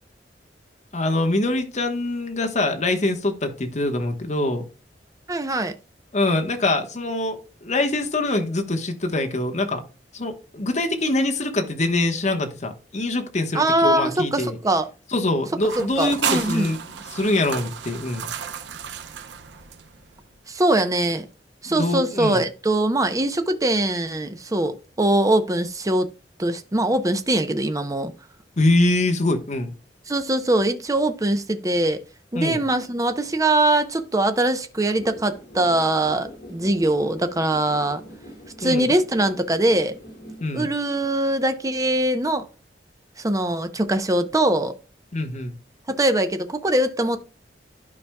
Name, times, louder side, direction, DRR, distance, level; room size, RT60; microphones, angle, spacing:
voice 1, 0.9-4.6 6.1-9.8 10.1-14.6 15.1-18.3 21.6-22.4 28.6-29.7 32.3-32.6 38.6-38.9 40.4-40.7 45.1-45.6, left 2 dB, 40° left, 1.2 m, -24 dB
voice 2, 5.3-5.7 13.5-14.9 15.8-16.7 20.5-21.3 21.6-26.1 26.4-28.1 30.1-32.0 32.3-38.0 38.6-39.9 40.5-42.5 43.2-44.7 45.9-47.2, right 1 dB, 20° right, 0.6 m, -22 dB
sound 1, 15.6-20.2, right 7 dB, 80° right, 0.7 m, -32 dB
sound 2, 35.0-40.4, equal, 60° left, 4.5 m, -43 dB
12.0 x 5.0 x 2.2 m
head